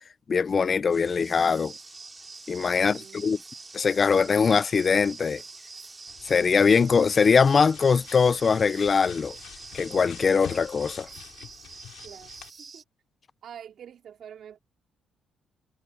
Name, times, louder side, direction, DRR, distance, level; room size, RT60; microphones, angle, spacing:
voice 1, 0.3-1.7 2.5-3.4 3.7-5.4 6.2-9.3 9.7-11.1, left 5 dB, 40° left, 0.6 m, -22 dB
sound 1, 0.9-11.1, equal, ahead, 3.0 m, -51 dB
sound 2, 1.2-12.8, right 5 dB, 35° right, 6.4 m, -46 dB
voice 2, 2.6-3.3 12.0-12.4 12.7-12.8 13.4-14.6, right 9 dB, 65° right, 4.4 m, -46 dB
sound 3, 6.1-12.5, left 11 dB, 80° left, 5.4 m, -47 dB
cardioid pair, 90°, 0 cm